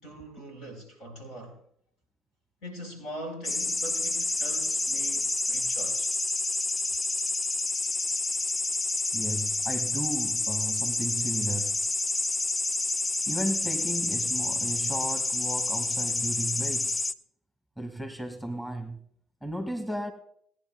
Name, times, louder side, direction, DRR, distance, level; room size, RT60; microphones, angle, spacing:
voice 1, 0.0-1.6 2.6-6.1, right 1 dB, 70° left, 4.5 m, -42 dB
sound 1, 3.4-17.1, left 3 dB, 25° left, 0.6 m, -29 dB
voice 2, 9.1-11.8 13.3-17.0 17.8-19.0 19.4-20.1, right 1 dB, 5° left, 2.1 m, -34 dB
19.5 x 10.5 x 2.3 m
hypercardioid pair, 55°, 0 cm